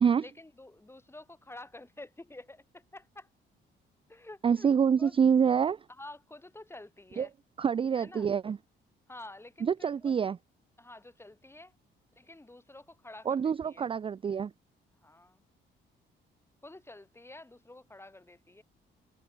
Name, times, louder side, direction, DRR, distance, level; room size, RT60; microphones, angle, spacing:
voice 1, 0.2-3.3 4.1-4.7 5.0-5.2 5.9-7.3 7.9-8.3 9.1-10.2 10.8-11.8 12.1-13.9 15.0-15.4 16.6-18.6, left 2 dB, 10° left, 3.7 m, -49 dB
voice 2, 4.4-5.8 7.2-7.3 7.6-8.6 9.6-10.4 13.3-14.5, right 7 dB, 25° right, 0.4 m, -26 dB
cardioid pair, 90°, 20 cm